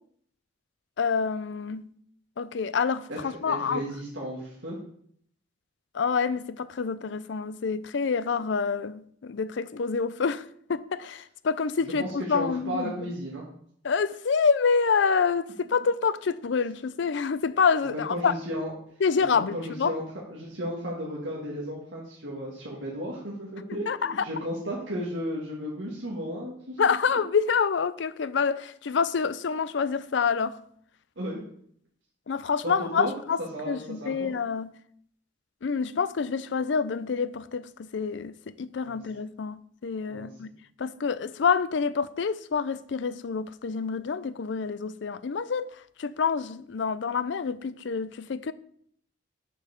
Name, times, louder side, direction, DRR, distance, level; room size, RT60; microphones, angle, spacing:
voice 1, 1.0-1.9 2.4-3.8 5.9-12.9 13.8-18.3 19.0-19.9 23.9-24.2 26.8-30.6 32.3-33.4 33.7-34.7 35.6-40.5 40.8-45.7 46.0-48.5, left 5 dB, 65° left, 0.4 m, -27 dB
voice 2, 3.1-4.8 12.0-13.5 17.9-18.7 19.2-26.8 31.2-31.4 32.6-33.1 33.4-34.3 38.8-39.0 40.1-40.3, equal, 75° right, 1.8 m, -34 dB
7.2 x 5.5 x 6.4 m
head